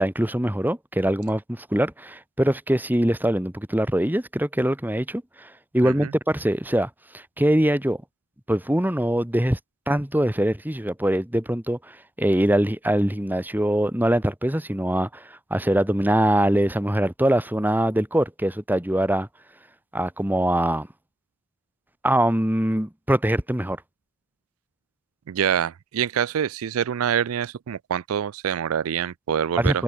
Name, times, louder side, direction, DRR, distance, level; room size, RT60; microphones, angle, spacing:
voice 1, 0.0-8.0 8.5-9.6 9.9-19.3 19.9-20.9 22.0-23.8 29.6-29.8, right 1 dB, 10° right, 1.4 m, -23 dB
voice 2, 25.3-29.8, right 9 dB, 70° right, 0.4 m, -26 dB
head